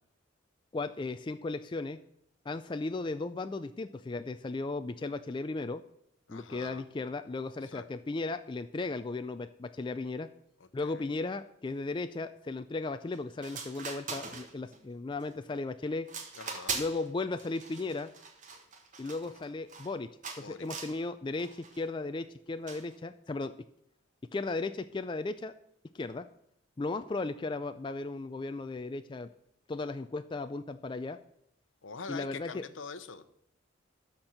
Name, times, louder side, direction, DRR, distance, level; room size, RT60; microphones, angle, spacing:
voice 1, 0.7-2.0 2.5-5.8 6.3-10.3 10.7-16.1 16.7-18.1 19.0-20.1 20.4-23.5 24.3-25.5 25.9-26.3 26.8-29.3 29.7-31.2 32.1-32.6, left 3 dB, 25° left, 9 dB, 0.3 m, -36 dB
voice 2, 6.3-6.9 7.7-7.9 10.8-11.0 16.4-16.8 20.4-20.7 31.8-33.2, left 4 dB, 70° left, 12 dB, 0.8 m, -44 dB
sound 1, 13.1-13.2 13.4-14.8 15.2-15.6 16.1-17.1 17.4-19.9 20.2-21.0 21.4-21.8 22.7-22.9, right 5 dB, 40° right, 1.5 m, -41 dB
13.0 x 4.5 x 6.5 m, 0.79 s
head